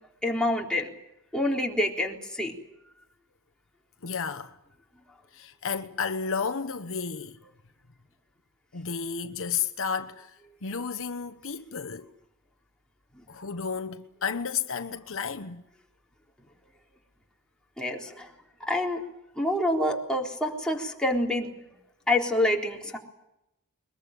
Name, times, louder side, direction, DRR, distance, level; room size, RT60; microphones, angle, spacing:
voice 1, 0.2-0.9 1.3-2.5 13.1-13.2 17.8-18.3 18.7-19.0 19.4-21.5 22.1-23.0, left 1 dB, 5° left, 3.8 m, -27 dB
voice 2, 4.0-4.6 5.3-7.4 8.7-10.4 10.6-12.1 13.3-15.6, left 6 dB, 65° left, 1.1 m, -32 dB
23.0 x 21.5 x 9.1 m
head